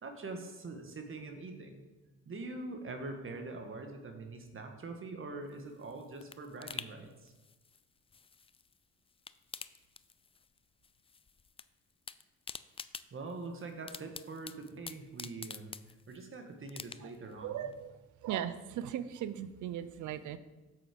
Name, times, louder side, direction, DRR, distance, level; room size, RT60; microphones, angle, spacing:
voice 1, 0.0-1.8 2.2-7.3 13.1-15.7 16.1-17.7, right 3 dB, 45° right, 5 dB, 1.7 m, -44 dB
sound 1, 5.5-8.8 9.1-10.6 10.8-11.7 11.9-16.3 16.7-17.3 17.7-17.8, left 5 dB, 20° left, 0.3 m, -47 dB
voice 2, 17.4-17.9 18.2-20.4, right 10 dB, 75° right, 13 dB, 0.7 m, -38 dB
8.4 x 7.6 x 5.3 m, 1.1 s
cardioid pair, 90°, 30 cm